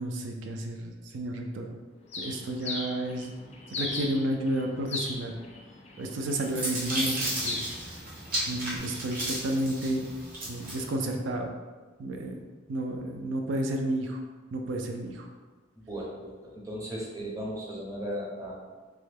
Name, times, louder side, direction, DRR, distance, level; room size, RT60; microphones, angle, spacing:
voice 1, 0.0-1.7 2.2-3.3 3.7-5.4 6.0-7.6 8.5-10.1 10.5-11.5 12.0-14.2 14.5-15.3, right 1 dB, 70° right, 3 dB, 0.4 m, -31 dB
Bird, 2.1-8.8, left 3 dB, 35° left, 0.4 m, -39 dB
sound 1, 6.1-10.9, right 1 dB, 50° right, 0.8 m, -34 dB
voice 2, 15.8-18.7, equal, 20° right, -3 dB, 0.6 m, -37 dB
3.3 x 2.1 x 3.3 m, 1.3 s
head